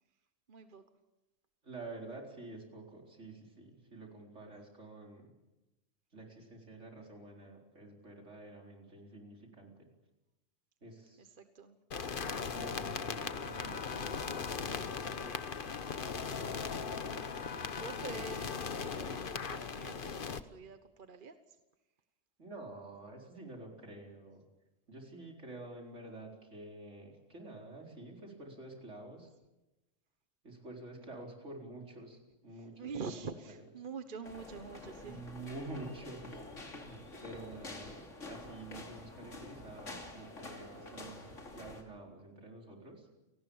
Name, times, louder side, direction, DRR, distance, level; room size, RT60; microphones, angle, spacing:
voice 1, 0.5-0.8 11.2-11.8 17.7-21.4 32.8-35.2, right 5 dB, 45° right, 9 dB, 1.2 m, -46 dB
voice 2, 1.6-5.3 6.1-9.9 10.8-11.3 12.4-14.2 18.1-18.3 22.4-24.4 24.9-29.3 30.4-33.6 35.0-43.1, right 2 dB, 70° right, 0 dB, 4.8 m, -49 dB
sound 1, 11.9-20.4, left 5 dB, 45° left, 1.2 m, -38 dB
sound 2, 34.2-41.8, left 2 dB, 80° left, 3.3 m, -48 dB
30.0 x 18.5 x 7.1 m, 1.0 s
omnidirectional pair, 1.3 m